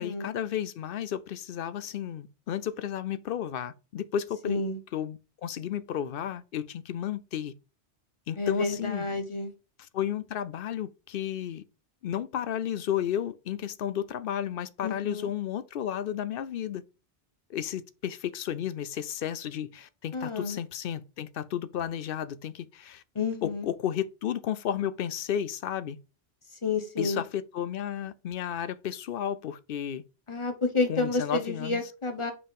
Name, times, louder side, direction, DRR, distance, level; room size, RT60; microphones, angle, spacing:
voice 1, 0.0-4.6 4.9-7.5 8.3-9.1 9.8-11.6 12.0-16.8 17.5-23.0 23.4-26.0 27.0-30.0 30.9-31.8, left 10 dB, 60° left, 0.7 m, -33 dB
voice 2, 4.4-4.8 8.4-9.5 14.8-15.3 20.1-20.6 23.1-23.7 26.6-27.2 30.3-32.3, left 3 dB, 25° left, 1.1 m, -30 dB
5.6 x 4.8 x 5.2 m
omnidirectional pair, 1.2 m